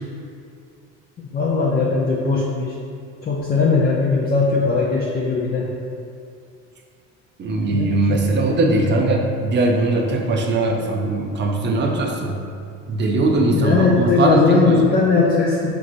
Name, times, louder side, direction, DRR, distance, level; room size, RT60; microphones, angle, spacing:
voice 1, 1.3-2.7 3.2-5.7 7.7-8.3 13.5-15.8, left 4 dB, 30° left, -4 dB, 0.5 m, -19 dB
voice 2, 7.4-12.4 12.9-14.8, right 2 dB, 35° right, 1 dB, 0.6 m, -20 dB
5.2 x 3.0 x 2.6 m, 2.3 s
supercardioid pair, 95°, 32 cm